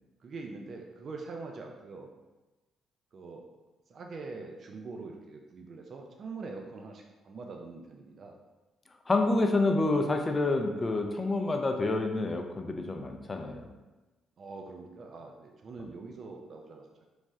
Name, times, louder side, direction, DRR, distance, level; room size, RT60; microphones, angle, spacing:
voice 1, 0.2-2.1 3.1-3.4 3.9-8.4 14.4-17.0, right 3 dB, 50° right, 2 dB, 0.3 m, -43 dB
voice 2, 9.1-13.7, left 2 dB, 25° left, 4 dB, 0.3 m, -28 dB
3.1 x 2.6 x 2.3 m, 1.1 s
cardioid pair, 90°, 0 cm